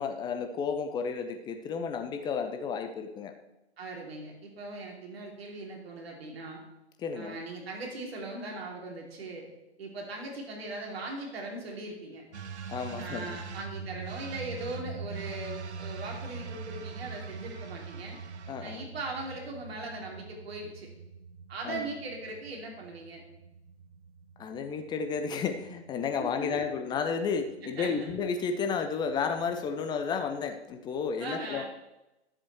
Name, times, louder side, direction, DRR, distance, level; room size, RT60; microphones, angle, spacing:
voice 1, 0.0-3.3 7.0-7.4 12.7-13.3 18.5-18.8 21.6-21.9 24.4-31.6, left 6 dB, 15° left, 6 dB, 0.5 m, -32 dB
voice 2, 3.8-6.6 7.1-9.5 9.8-12.2 13.0-18.2 18.6-20.9 21.5-23.2 26.2-26.7 27.6-28.1 31.2-31.7, right 2 dB, 65° right, 0 dB, 2.9 m, -39 dB
sound 1, 12.3-29.8, right 5 dB, 80° right, 0.8 m, -44 dB
12.5 x 7.4 x 3.1 m, 0.94 s
figure-of-eight pair, 120°, 34 cm